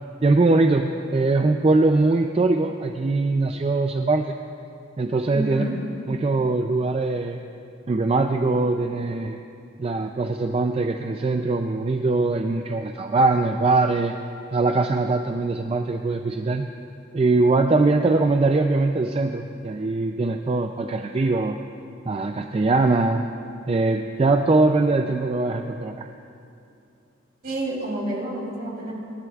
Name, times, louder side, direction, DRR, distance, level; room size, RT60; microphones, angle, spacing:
voice 1, 0.2-4.4 5.0-5.6 6.1-7.4 7.9-9.4 9.8-14.1 14.5-16.7 17.1-21.6 22.1-23.2 23.7-26.1, right 3 dB, 30° right, 5 dB, 0.3 m, -22 dB
voice 2, 5.3-5.8 27.4-29.0, right 1 dB, 50° right, -3 dB, 3.0 m, -29 dB
26.0 x 11.0 x 2.4 m, 2.6 s
head